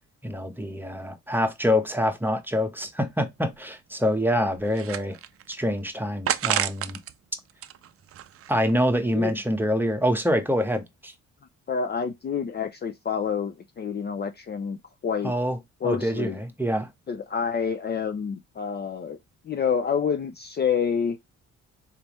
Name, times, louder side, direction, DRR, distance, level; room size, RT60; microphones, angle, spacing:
voice 1, 0.2-5.2 5.5-7.0 8.5-11.1 15.2-15.6 15.8-16.9, equal, 5° right, 0.9 m, -25 dB
sound 1, 3.1-3.2 3.5-3.6 4.2-5.5 6.3-7.1 7.5-8.7, right 11 dB, 50° right, 0.5 m, -30 dB
voice 2, 11.7-14.8 15.0-15.3 15.8-16.4 17.1-19.2 19.4-21.2, left 6 dB, 35° left, 0.5 m, -28 dB
4.1 x 3.4 x 2.9 m
cardioid pair, 90°, 30 cm